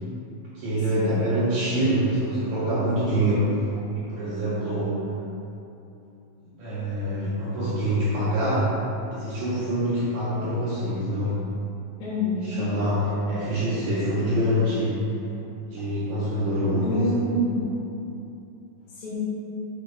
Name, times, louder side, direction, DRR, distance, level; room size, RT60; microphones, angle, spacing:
voice 1, 0.5-3.5 3.9-5.0 6.4-8.7 9.1-11.4 12.4-15.0 15.7-17.1, equal, 75° right, -10 dB, 1.7 m, -25 dB
voice 2, 12.0-12.6 16.8-17.6 19.0-19.2, equal, 80° left, -11 dB, 3.5 m, -27 dB
7.7 x 7.0 x 2.4 m, 2.7 s
omnidirectional pair, 4.8 m